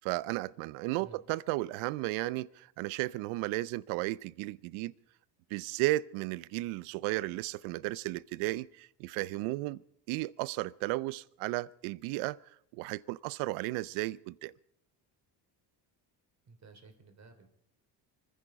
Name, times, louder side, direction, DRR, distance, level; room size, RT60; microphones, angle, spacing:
voice 1, 0.0-4.9 5.5-9.8 10.1-12.4 12.7-14.5, right 19 dB, 85° right, 0.6 m, -34 dB
voice 2, 16.4-17.5, right 3 dB, 35° right, 3.1 m, -55 dB
25.0 x 10.0 x 5.1 m
cardioid pair, 105°, 47 cm